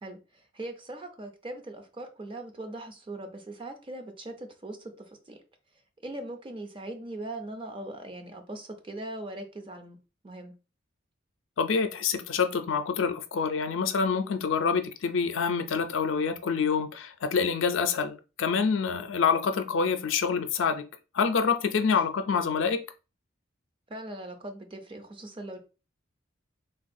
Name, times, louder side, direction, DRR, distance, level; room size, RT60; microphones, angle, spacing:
voice 1, 0.0-5.4 6.0-10.0 10.2-10.5 21.7-21.9 23.9-25.6, right 1 dB, 25° right, 0.5 m, -40 dB
voice 2, 11.6-20.9 21.1-22.8, left 5 dB, 75° left, 0.4 m, -26 dB
3.4 x 2.3 x 2.6 m
head